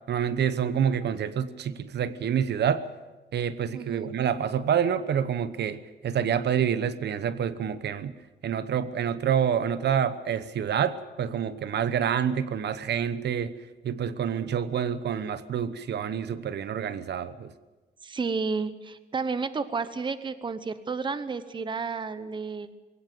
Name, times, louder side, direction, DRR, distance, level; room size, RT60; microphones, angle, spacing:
voice 1, 0.1-2.8 3.3-8.2 8.4-13.6 13.8-17.5, right 8 dB, 60° right, 13 dB, 1.0 m, -27 dB
voice 2, 3.7-4.1 18.0-22.7, right 4 dB, 25° right, 13 dB, 0.9 m, -31 dB
21.5 x 17.5 x 7.7 m, 1.2 s
cardioid pair, 135°, 19 cm